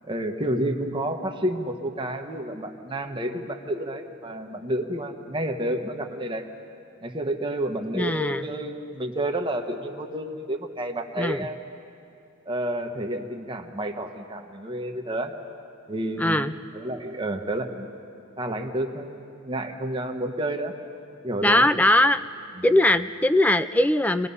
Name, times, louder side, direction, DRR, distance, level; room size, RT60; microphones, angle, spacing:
voice 1, 0.0-6.5 7.0-11.6 12.4-15.3 15.9-17.9 18.4-20.7 21.2-21.7 22.5-22.6, right 1 dB, 25° right, 3 dB, 1.3 m, -30 dB
voice 2, 7.9-8.5 11.2-11.5 16.2-16.5 21.4-22.2 22.6-24.3, left 1 dB, 5° left, 13 dB, 0.4 m, -20 dB
27.5 x 20.5 x 5.6 m, 2.7 s
head